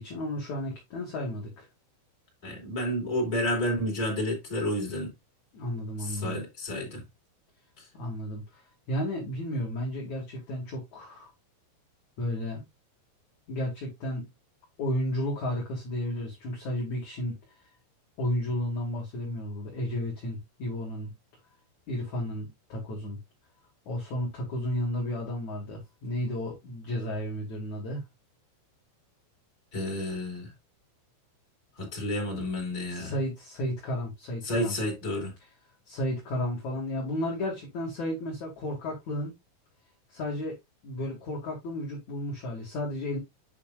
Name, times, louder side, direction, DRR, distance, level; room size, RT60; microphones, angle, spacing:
voice 1, 0.0-1.7 5.5-6.4 7.9-8.6 8.9-11.3 12.2-12.7 13.5-14.3 14.8-17.4 18.2-21.1 21.9-23.2 23.9-28.0 32.9-34.8 35.9-39.3 40.1-40.5 40.8-43.2, left 1 dB, 45° left, 2.9 m, -33 dB
voice 2, 2.4-5.1 6.0-7.0 29.7-30.5 31.8-33.2 34.4-35.3, left 1 dB, 20° left, 4.1 m, -30 dB
9.7 x 6.5 x 2.5 m
omnidirectional pair, 5.8 m